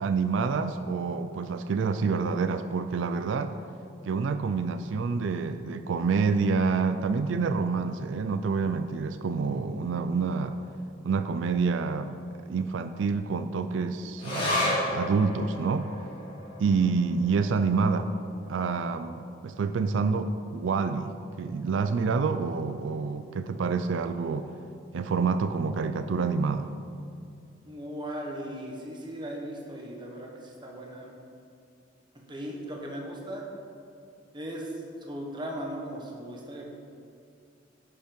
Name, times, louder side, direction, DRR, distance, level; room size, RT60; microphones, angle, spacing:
voice 1, 0.0-3.5 4.1-10.6 11.0-15.9 16.6-18.1 18.5-21.1 21.4-24.5 24.9-26.7, right 4 dB, 85° right, 9 dB, 0.4 m, -27 dB
sound 1, 14.2-21.0 21.3-21.4 21.7-22.4 22.9-23.0, left 1 dB, 25° left, 2.4 m, -35 dB
voice 2, 27.7-31.1 32.1-33.4 34.3-36.7, equal, 25° right, -1 dB, 1.3 m, -38 dB
10.5 x 5.4 x 5.2 m, 2.5 s
head